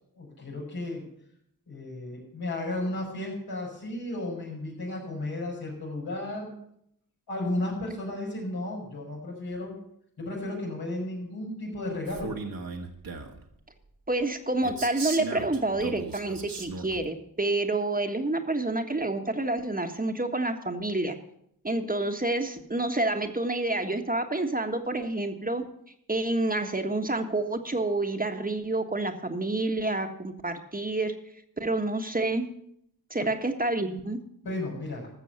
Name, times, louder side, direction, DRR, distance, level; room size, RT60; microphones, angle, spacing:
voice 1, 0.2-1.0 1.7-6.6 7.3-9.8 10.2-12.3 34.4-35.1, left 1 dB, 85° left, -3 dB, 5.6 m, -34 dB
Male speech man speaking, 12.1-13.4 14.6-17.1, right 4 dB, 65° right, 1.8 m, -37 dB
voice 2, 14.1-21.2 21.6-25.6 26.1-31.1 31.6-32.4 33.1-34.2, right 2 dB, 25° right, 5 dB, 1.5 m, -28 dB
14.0 x 6.9 x 6.7 m, 0.72 s
cardioid pair, 45°, 37 cm